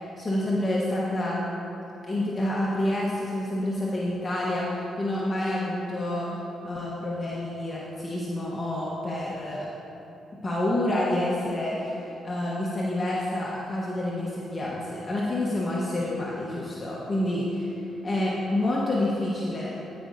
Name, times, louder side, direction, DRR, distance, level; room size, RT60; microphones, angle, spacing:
voice 1, 0.2-1.5 2.0-6.4 6.6-9.7 10.4-11.9 12.2-17.7 18.0-19.7, left 1 dB, 35° left, -5 dB, 1.0 m, -28 dB
14.5 x 5.2 x 2.6 m, 3.0 s
supercardioid pair, 55°, 0 cm